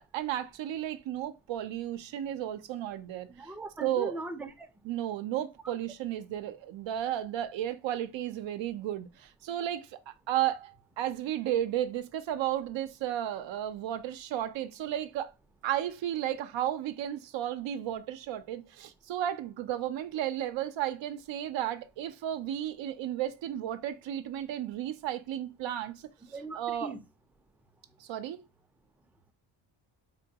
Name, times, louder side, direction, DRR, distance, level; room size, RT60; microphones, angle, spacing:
voice 1, 0.0-3.5 3.8-4.2 4.8-15.3 15.6-26.1 26.5-26.9 28.0-28.4, right 11 dB, 75° right, 0.6 m, -33 dB
voice 2, 3.4-4.7 26.3-27.0, right 2 dB, 5° right, 0.5 m, -39 dB
4.3 x 2.2 x 2.7 m
cardioid pair, 75°, 46 cm